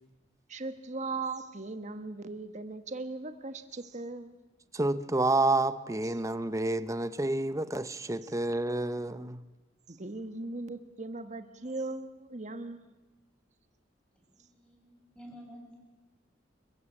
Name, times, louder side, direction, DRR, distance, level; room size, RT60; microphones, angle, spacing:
voice 1, 0.5-4.3 9.9-12.9, right 3 dB, 40° right, 9 dB, 1.5 m, -38 dB
voice 2, 4.7-9.4, right 2 dB, 20° right, 13 dB, 0.9 m, -29 dB
voice 3, 14.2-15.7, equal, 5° left, -1 dB, 7.6 m, -51 dB
29.0 x 15.5 x 8.5 m, 1.1 s
head